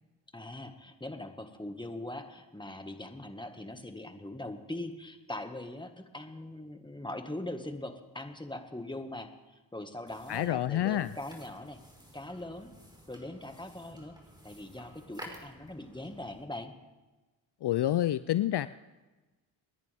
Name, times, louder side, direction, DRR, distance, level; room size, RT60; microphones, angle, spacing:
voice 1, 0.3-11.8 12.1-12.7 13.1-14.2 14.4-16.7, left 1 dB, 10° left, 6 dB, 1.9 m, -41 dB
sound 1, 10.1-16.4, equal, 10° right, 4.9 m, -52 dB
voice 2, 10.3-11.1 17.6-18.7, left 13 dB, 60° left, 15 dB, 0.5 m, -28 dB
29.5 x 10.5 x 3.6 m, 1.2 s
cardioid pair, 50°, 46 cm